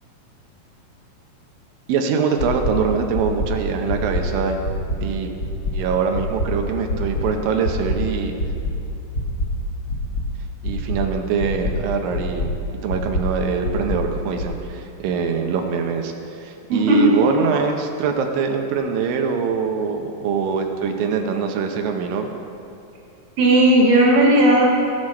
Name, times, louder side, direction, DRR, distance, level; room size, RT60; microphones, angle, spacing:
voice 1, 1.9-4.6 5.0-5.3 5.7-8.4 10.6-12.5 12.8-16.1 16.4-22.3, right 6 dB, 90° right, 4 dB, 2.6 m, -23 dB
sound 1, 2.4-2.7 3.1-3.5 3.9-4.2 4.6-5.0 5.4-5.7 6.1-6.5 6.9-7.2 7.6-8.0 8.4-8.7 9.1-9.5 9.9-10.2 10.6-11.0 11.4-11.7 12.1-12.5 12.9-13.2 13.6-14.0 14.4-14.5, left 1 dB, 55° left, 1.7 m, -24 dB
voice 2, 16.7-17.6 23.4-24.7, right 1 dB, 50° right, -3 dB, 2.0 m, -15 dB
16.0 x 6.3 x 4.3 m, 2.8 s
omnidirectional pair, 3.9 m